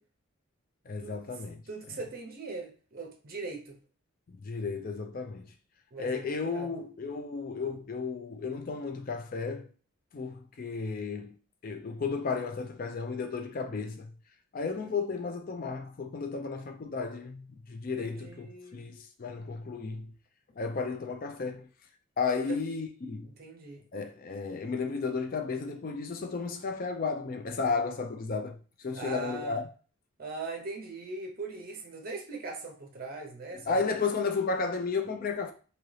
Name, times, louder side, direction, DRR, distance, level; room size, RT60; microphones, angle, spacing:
voice 1, 0.9-1.6 1.9-2.0 4.3-5.5 6.0-9.7 10.1-11.3 11.6-14.1 14.5-20.1 20.6-21.7 22.2-23.3 23.9-29.7 33.5-35.5, left 4 dB, 40° left, 0.4 m, -33 dB
voice 2, 1.7-3.8 5.9-6.7 14.6-14.8 18.0-18.8 22.4-22.6 23.2-23.8 28.9-29.6 30.2-33.8, right 3 dB, 40° right, 0.6 m, -40 dB
2.8 x 2.7 x 3.1 m
head